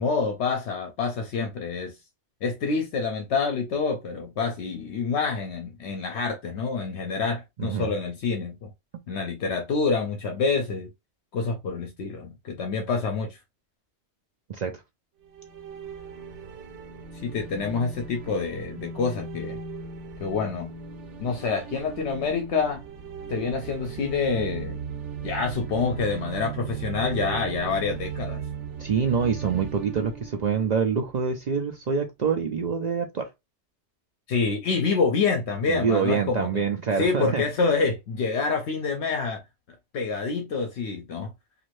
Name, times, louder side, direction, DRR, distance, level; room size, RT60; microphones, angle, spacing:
voice 1, 0.0-2.0 2.4-8.7 9.1-10.9 11.3-13.4 17.2-19.6 20.2-20.7 21.2-22.8 23.3-24.8 25.2-28.4 34.3-36.7 37.0-39.4 39.9-41.3, left 4 dB, 75° left, 0.9 m, -27 dB
voice 2, 7.6-7.9 14.5-14.7 28.8-33.3 35.7-37.4, right 6 dB, 60° right, 0.4 m, -26 dB
sound 1, 15.3-31.4, right 6 dB, 90° right, 1.0 m, -37 dB
2.6 x 2.5 x 3.1 m
omnidirectional pair, 1.2 m